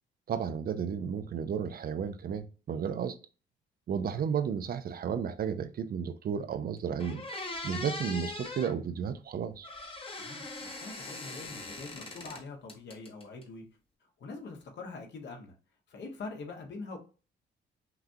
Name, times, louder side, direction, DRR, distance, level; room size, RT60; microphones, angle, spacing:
voice 1, 0.3-3.2 3.9-7.2 7.6-9.7, right 7 dB, 50° right, 0.5 m, -33 dB
sound 1, 6.5-6.6 7.0-8.7 9.6-12.4 12.7-13.4, left 2 dB, 30° left, 1.0 m, -40 dB
voice 2, 10.2-13.7 14.2-15.6 15.9-17.0, left 3 dB, 60° left, 1.3 m, -44 dB
5.8 x 2.3 x 2.8 m
cardioid pair, 90°, 20 cm